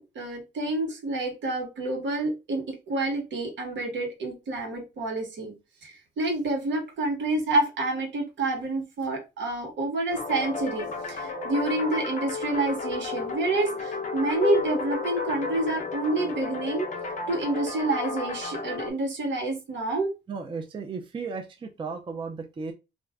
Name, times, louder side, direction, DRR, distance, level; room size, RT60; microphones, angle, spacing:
voice 1, 0.0-5.5 5.8-16.9 17.3-20.1, right 2 dB, 65° right, 2 dB, 1.2 m, -28 dB
sound 1, 10.1-18.9, left 4 dB, 40° left, 0.9 m, -32 dB
voice 2, 20.3-22.7, right 4 dB, 25° right, 5 dB, 0.4 m, -35 dB
2.5 x 2.2 x 3.4 m, 0.26 s
cardioid pair, 90°, 20 cm